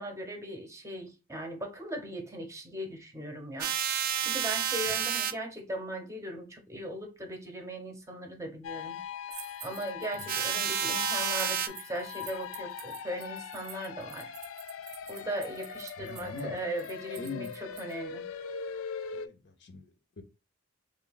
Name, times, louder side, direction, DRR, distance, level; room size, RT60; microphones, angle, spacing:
voice 1, 0.0-3.7 4.2-9.0 9.6-14.3 15.1-18.2, right 1 dB, 15° right, 0.8 m, -38 dB
sound 1, 3.6-5.3 10.3-11.7, right 10 dB, 45° right, 0.3 m, -30 dB
sound 2, 8.6-19.3, left 7 dB, 80° left, 0.4 m, -41 dB
sound 3, 9.3-10.9 11.3-17.9, right 9 dB, 85° right, 0.6 m, -49 dB
voice 2, 16.0-16.6 17.2-17.5 19.1-20.2, left 3 dB, 60° left, 0.7 m, -42 dB
3.4 x 2.3 x 3.9 m
head